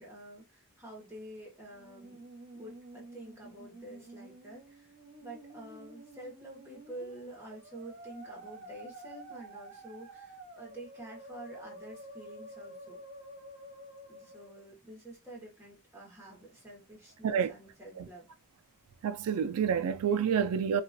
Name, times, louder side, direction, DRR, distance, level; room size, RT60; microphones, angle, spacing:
voice 1, 0.0-2.2 2.5-4.9 5.2-13.0 14.1-18.2, right 1 dB, 10° right, 1.3 m, -48 dB
Musical instrument, 1.7-14.7, right 1 dB, 45° right, 1.0 m, -50 dB
voice 2, 19.0-20.8, right 7 dB, 80° right, 0.4 m, -28 dB
2.9 x 2.4 x 2.6 m
head